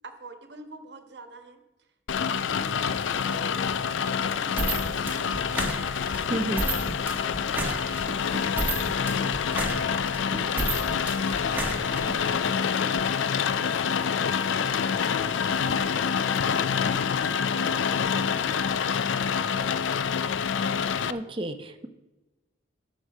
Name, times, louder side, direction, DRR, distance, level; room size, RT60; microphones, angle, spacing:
voice 1, 0.0-17.2 17.5-17.7 18.0-20.1, right 2 dB, 60° right, 6 dB, 1.2 m, -47 dB
Rain, 2.1-21.1, left 7 dB, 75° left, 0.4 m, -27 dB
sound 1, 4.6-12.4, right 2 dB, 10° right, 1.3 m, -32 dB
voice 2, 6.3-6.6 20.8-21.9, right 1 dB, 25° right, 8 dB, 0.7 m, -32 dB
sound 2, 10.4-17.0, left 1 dB, 55° left, 4.3 m, -46 dB
13.0 x 6.3 x 5.4 m, 1.1 s
head